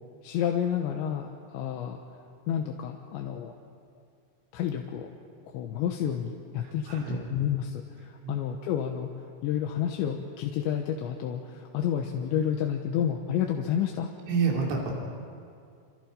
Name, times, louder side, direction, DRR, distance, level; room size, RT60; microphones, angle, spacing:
voice 1, 0.2-2.0 2.5-3.5 4.5-5.1 5.5-9.1 9.4-14.1, left 9 dB, 80° left, 2 dB, 3.3 m, -30 dB
voice 2, 6.6-7.2 8.3-8.4 14.3-14.9, right 5 dB, 90° right, -1 dB, 5.3 m, -28 dB
29.0 x 27.0 x 5.2 m, 2.3 s
omnidirectional pair, 5.2 m